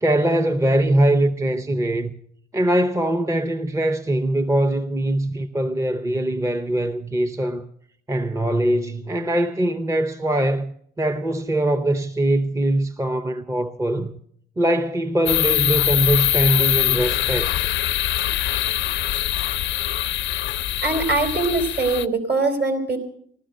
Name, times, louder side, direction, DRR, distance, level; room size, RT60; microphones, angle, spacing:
voice 1, 0.0-2.1 2.5-7.6 8.1-14.1 14.6-17.6, right 1 dB, 15° right, 0.7 m, -22 dB
sound 1, 15.3-22.1, left 13 dB, 70° left, 0.5 m, -23 dB
voice 2, 20.8-23.0, right 3 dB, 55° right, 3.8 m, -22 dB
16.5 x 12.5 x 6.4 m
cardioid pair, 90°, 20 cm